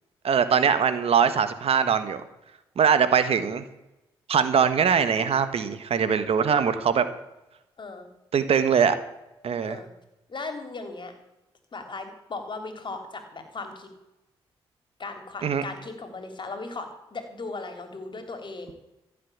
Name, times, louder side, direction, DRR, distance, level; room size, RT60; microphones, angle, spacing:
voice 1, 0.2-2.2 2.8-3.6 4.3-7.0 8.3-8.9 9.4-9.8 15.4-15.6, right 7 dB, 65° right, 11 dB, 1.4 m, -22 dB
voice 2, 7.8-8.1 9.6-9.9 10.3-11.1 11.7-13.9 15.0-18.7, left 3 dB, 45° left, 6 dB, 3.5 m, -37 dB
15.0 x 7.6 x 8.7 m, 0.94 s
supercardioid pair, 50°, 11 cm